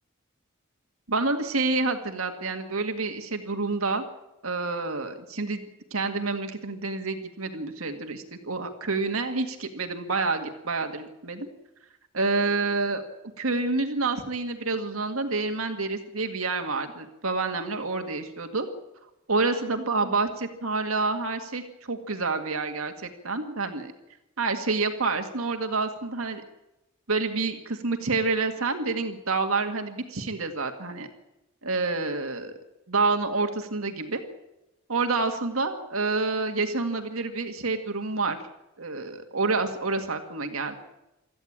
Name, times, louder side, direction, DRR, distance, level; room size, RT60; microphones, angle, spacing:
voice 1, 1.1-4.0 4.4-5.7 5.9-11.5 12.1-13.0 13.4-18.7 19.3-23.9 24.4-26.4 27.1-31.1 31.6-32.5 32.9-34.2 34.9-38.4 38.8-40.8, right 3 dB, 85° right, 5 dB, 1.9 m, -28 dB
25.0 x 14.0 x 8.7 m, 0.94 s
head